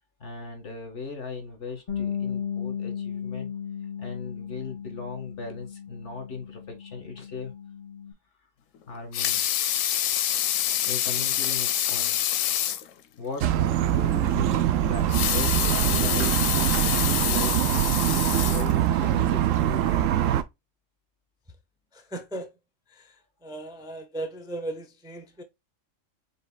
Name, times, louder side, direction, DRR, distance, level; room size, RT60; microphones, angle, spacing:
voice 1, 0.2-3.5 4.0-7.5 8.9-9.4 10.8-12.2 13.2-13.5 13.8-16.5 16.9-20.3, left 4 dB, 65° left, 1.9 m, -38 dB
Bass guitar, 1.9-8.1, left 7 dB, 45° left, 2.1 m, -35 dB
Water tap faucet / Sink (filling or washing) / Liquid, 8.9-12.9 13.4-13.5 13.8-13.9 15.0-19.1 19.7-19.8, left 11 dB, 85° left, 1.0 m, -27 dB
sound 1, 13.4-20.4, right 11 dB, 90° right, 1.0 m, -23 dB
voice 2, 21.9-22.5 22.9-23.2 23.4-25.4, right 1 dB, 5° right, 0.5 m, -37 dB
5.3 x 3.8 x 2.3 m
omnidirectional pair, 1.3 m